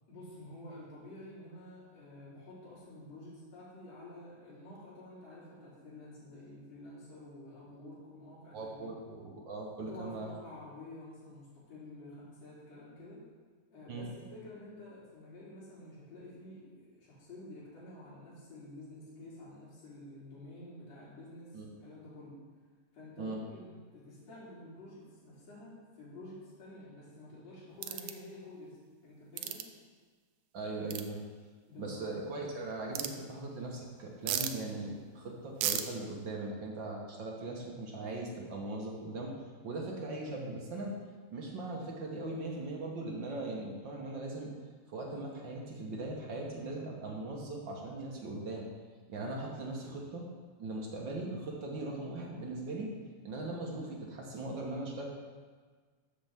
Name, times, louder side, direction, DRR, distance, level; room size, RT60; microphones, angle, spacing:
voice 1, 0.1-8.9 9.8-13.2 13.7-22.4 22.9-28.8 29.0-29.6 31.7-32.0, left 1 dB, 60° left, -9 dB, 4.2 m, -50 dB
voice 2, 8.5-10.3 13.9-14.1 21.5-21.7 23.2-23.4 30.5-31.2 31.8-39.3 39.6-41.0 41.3-44.5 44.9-48.7 49.1-50.3 50.6-52.9 53.2-55.1, right 2 dB, 50° right, -2 dB, 1.6 m, -39 dB
sound 1, 27.8-28.1 29.4-29.6 30.9-31.0 32.9-33.1 34.3-34.5 35.6-35.8, right 11 dB, 85° right, 1.4 m, -33 dB
13.0 x 7.1 x 3.6 m, 1.5 s
omnidirectional pair, 3.4 m